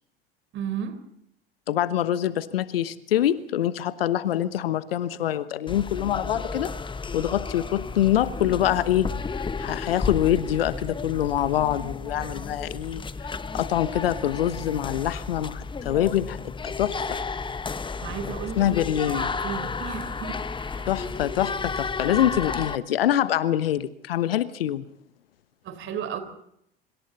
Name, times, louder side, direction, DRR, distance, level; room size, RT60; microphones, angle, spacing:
voice 1, 0.5-1.0 18.0-18.7 19.0-20.9 25.6-26.2, right 8 dB, 40° right, 10 dB, 4.2 m, -34 dB
voice 2, 1.7-6.7 7.1-9.1 9.3-13.0 13.5-17.2 18.6-19.3 20.9-24.9, left 11 dB, 70° left, 15 dB, 1.2 m, -25 dB
sound 1, 5.7-22.8, left 4 dB, 15° left, 1.1 m, -33 dB
26.0 x 25.5 x 4.2 m, 0.74 s
figure-of-eight pair, 75°, 30 cm